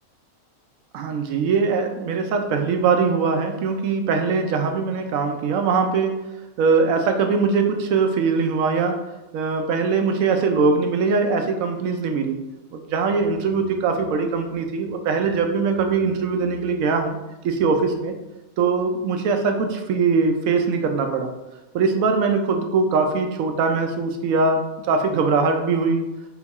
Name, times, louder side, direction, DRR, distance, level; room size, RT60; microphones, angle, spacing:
voice 1, 0.9-6.1 6.6-8.9 9.3-12.4 12.7-17.2 17.4-18.1 18.6-21.3 21.7-26.0, right 4 dB, 75° right, 5 dB, 1.0 m, -21 dB
4.5 x 2.3 x 4.0 m, 1.0 s
omnidirectional pair, 1.5 m